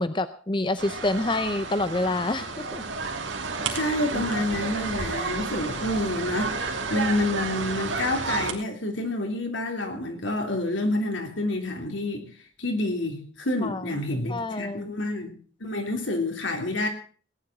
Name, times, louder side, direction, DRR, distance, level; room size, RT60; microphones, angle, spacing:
voice 1, 0.0-2.8 13.6-13.9 14.3-14.9, left 2 dB, 25° left, 12 dB, 0.6 m, -27 dB
sound 1, 0.8-8.5, right 4 dB, 80° right, 2.8 m, -31 dB
voice 2, 3.7-12.3 12.6-15.3 15.6-16.9, left 1 dB, 80° left, 4 dB, 3.2 m, -28 dB
18.0 x 10.5 x 6.0 m, 0.44 s
head